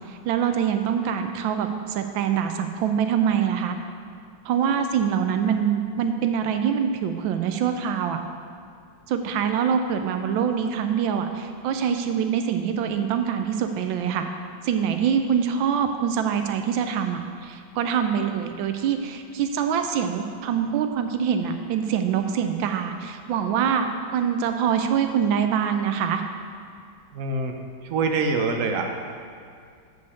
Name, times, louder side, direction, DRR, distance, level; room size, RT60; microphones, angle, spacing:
voice 1, 0.1-3.7 4.4-8.2 9.1-14.3 14.6-23.9 24.1-26.2, right 8 dB, 90° right, 6 dB, 1.4 m, -24 dB
voice 2, 27.1-27.6 27.8-29.1, right 3 dB, 55° right, 3 dB, 1.0 m, -25 dB
7.9 x 5.4 x 6.9 m, 2.2 s
omnidirectional pair, 2.0 m